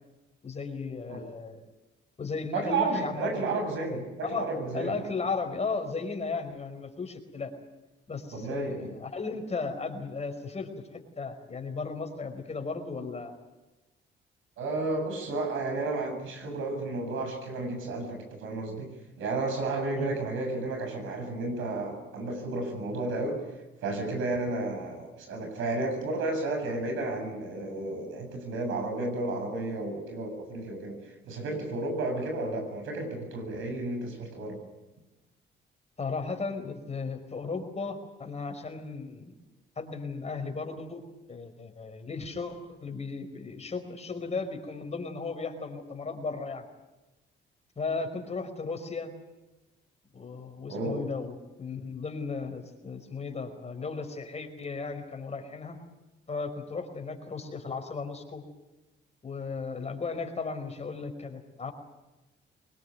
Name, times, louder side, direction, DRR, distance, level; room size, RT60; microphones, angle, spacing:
voice 1, 0.4-1.6 2.2-3.5 3.9-4.5 4.7-7.5 8.1-13.3 19.9-20.1 36.0-39.3 39.7-41.0 41.3-46.6 47.8-49.1 50.1-55.8 56.3-58.4 59.2-61.7, left 4 dB, 35° left, 5 dB, 5.0 m, -35 dB
voice 2, 2.5-5.0 8.3-8.9 14.6-23.4 23.8-31.0 31.2-34.6 50.7-51.0, right 2 dB, 80° right, 4 dB, 7.8 m, -32 dB
23.5 x 20.5 x 9.5 m, 1.1 s
cardioid pair, 90°, 20 cm